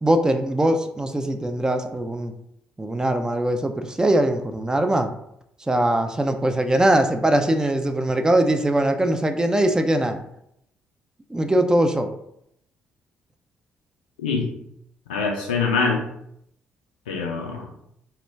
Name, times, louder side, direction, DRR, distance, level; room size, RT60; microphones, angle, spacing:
voice 1, 0.0-2.3 2.8-5.1 5.7-10.3 11.3-12.1, right 1 dB, 15° right, 7 dB, 0.3 m, -21 dB
voice 2, 15.1-16.0 17.1-17.6, left 4 dB, 80° left, 1 dB, 0.4 m, -24 dB
2.2 x 2.1 x 3.2 m, 0.76 s
figure-of-eight pair, 45°, 5 cm